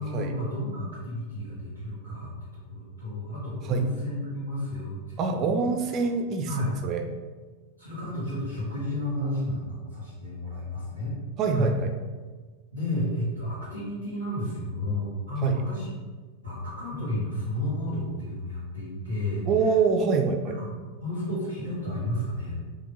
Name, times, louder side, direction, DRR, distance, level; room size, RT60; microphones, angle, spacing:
voice 1, 0.0-5.5 6.4-6.8 7.8-11.1 11.5-11.7 12.7-15.9 16.4-19.5 20.5-22.6, left 1 dB, 90° left, -13 dB, 1.3 m, -32 dB
voice 2, 5.2-6.5 6.8-7.0 11.4-11.9 15.4-15.6 19.5-20.5, right 5 dB, 35° right, 5 dB, 0.4 m, -25 dB
5.0 x 2.6 x 3.2 m, 1.4 s
figure-of-eight pair, 90°, 0 cm